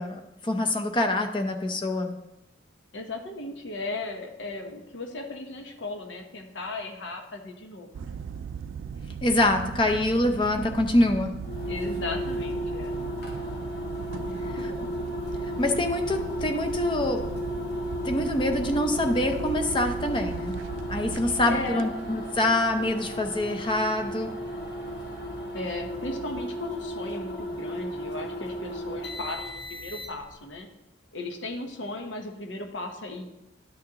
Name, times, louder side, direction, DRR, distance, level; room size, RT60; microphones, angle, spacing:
voice 1, 0.0-2.1 9.2-11.4 15.6-17.2 18.0-20.6 20.9-24.3, left 1 dB, 25° left, 5 dB, 0.6 m, -25 dB
voice 2, 2.9-8.2 11.7-13.0 14.3-14.9 21.2-21.9 25.5-30.7 31.1-33.2, left 2 dB, 70° left, 4 dB, 1.0 m, -36 dB
sound 1, 7.9-26.4, right 7 dB, 80° right, 0.3 m, -39 dB
sound 2, 11.4-30.4, equal, 55° left, 1.7 m, -34 dB
11.0 x 6.3 x 2.9 m, 0.94 s
head